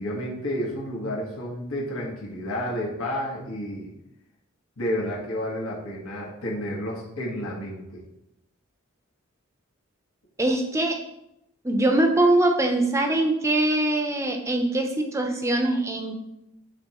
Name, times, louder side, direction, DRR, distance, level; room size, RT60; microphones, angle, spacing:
voice 1, 0.0-3.9 4.8-8.0, equal, 80° left, -4 dB, 1.6 m, -31 dB
voice 2, 10.4-11.0 11.6-16.2, right 1 dB, 15° right, 3 dB, 0.7 m, -22 dB
10.5 x 3.6 x 3.0 m, 0.83 s
head